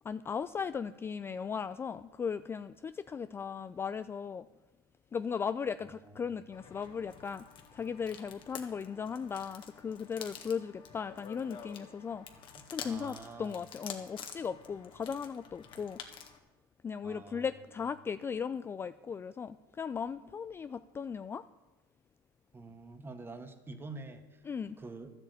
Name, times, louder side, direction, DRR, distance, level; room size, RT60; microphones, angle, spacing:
voice 1, 0.0-4.5 5.1-7.5 7.7-12.3 12.7-16.0 16.8-21.4 24.5-24.8, left 6 dB, 20° left, 0.4 m, -37 dB
voice 2, 5.8-6.3 12.5-13.6 17.0-17.5 22.5-24.5 24.8-25.1, right 3 dB, 20° right, 1.6 m, -47 dB
sound 1, 6.5-16.4, left 7 dB, 45° left, 1.7 m, -49 dB
12.5 x 8.0 x 8.2 m
hypercardioid pair, 95°, 12 cm